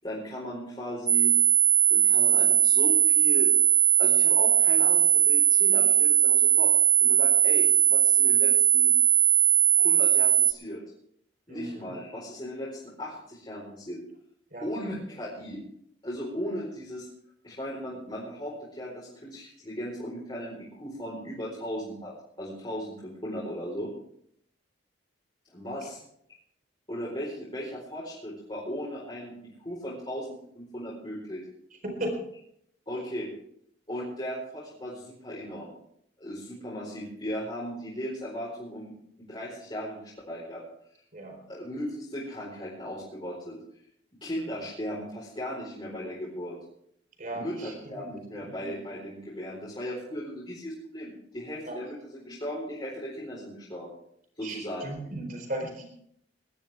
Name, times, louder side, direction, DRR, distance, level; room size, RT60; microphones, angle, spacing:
voice 1, 0.0-1.3 1.9-3.5 4.0-6.7 7.0-8.9 9.7-10.8 11.5-14.0 14.6-15.6 16.0-17.1 17.4-23.9 25.5-26.0 26.9-29.3 29.6-31.4 32.9-33.3 33.9-35.7 36.2-38.9 39.3-40.6 41.5-43.6 44.2-46.6 47.3-52.0 52.2-53.9 54.4-54.9, equal, 25° left, -7 dB, 4.4 m, -37 dB
sound 1, 1.1-10.5, right 8 dB, 15° right, 0.6 m, -20 dB
voice 2, 11.5-12.0 14.5-14.7 32.0-32.2 41.1-41.4 47.2-48.1 48.3-48.5 51.7-51.8 54.4-55.9, right 1 dB, 45° right, 3 dB, 4.2 m, -36 dB
19.5 x 13.0 x 3.5 m, 0.69 s
head